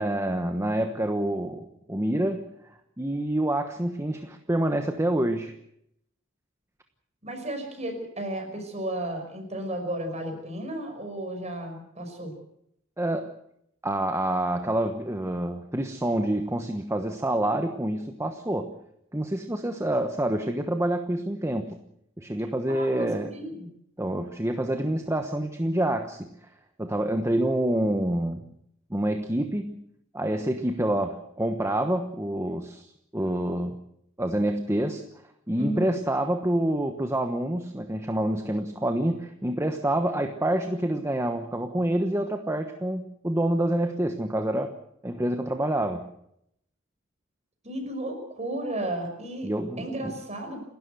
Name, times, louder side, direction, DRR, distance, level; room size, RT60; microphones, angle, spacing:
voice 1, 0.0-2.5 3.0-5.5 13.0-13.3 13.8-18.7 19.1-21.8 22.2-23.3 24.0-26.5 26.8-28.5 28.9-29.8 30.1-33.8 34.2-35.0 35.5-44.7 45.0-46.1 49.4-50.2, right 1 dB, 15° right, 6 dB, 1.1 m, -27 dB
voice 2, 7.2-12.3 22.7-23.7 35.6-35.9 47.6-49.5 49.8-50.6, right 1 dB, 35° right, 5 dB, 5.6 m, -33 dB
29.5 x 13.0 x 7.9 m, 0.75 s
head